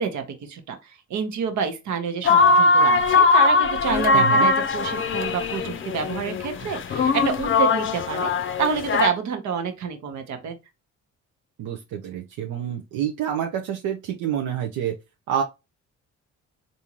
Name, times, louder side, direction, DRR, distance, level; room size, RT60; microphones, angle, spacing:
voice 1, 0.0-8.3 8.6-10.6, right 6 dB, 70° right, 1.0 m, -28 dB
sound 1, 2.2-9.1, left 3 dB, 45° left, 0.5 m, -20 dB
voice 2, 4.1-4.5 11.6-14.9 15.3-15.4, right 9 dB, 90° right, 0.6 m, -27 dB
3.6 x 2.7 x 2.9 m
cardioid pair, 90°, 30 cm